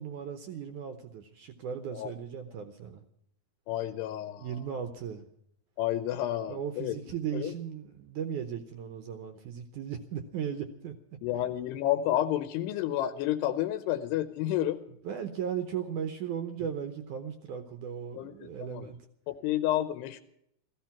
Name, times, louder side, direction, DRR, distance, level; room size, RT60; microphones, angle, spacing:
voice 1, 0.0-3.1 4.4-5.3 6.1-10.9 15.0-19.1, right 8 dB, 70° right, 8 dB, 1.9 m, -37 dB
voice 2, 3.7-4.5 5.8-7.0 7.3-7.5 11.2-14.8 18.1-18.9 19.3-20.2, left 12 dB, 90° left, 10 dB, 2.9 m, -30 dB
15.5 x 15.0 x 5.8 m, 0.73 s
omnidirectional pair, 4.6 m